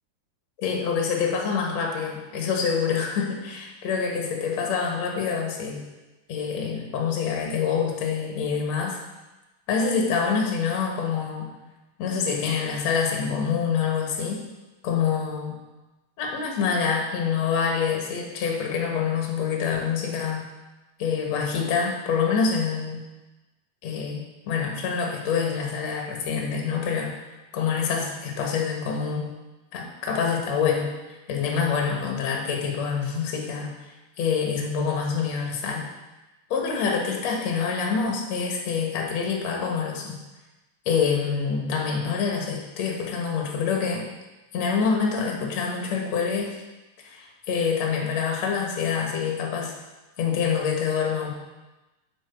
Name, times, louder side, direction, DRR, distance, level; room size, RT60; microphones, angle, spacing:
voice 1, 0.6-5.8 6.3-9.0 9.7-11.5 12.0-14.5 14.8-15.6 16.2-20.5 21.0-23.1 23.8-29.3 29.7-30.9 31.3-33.8 34.2-35.9 36.5-40.2 40.9-44.1 44.5-46.6 47.0-49.7 50.2-51.3, left 6 dB, 55° left, 0 dB, 2.0 m, -26 dB
8.6 x 7.7 x 5.7 m, 1.1 s
omnidirectional pair, 5.0 m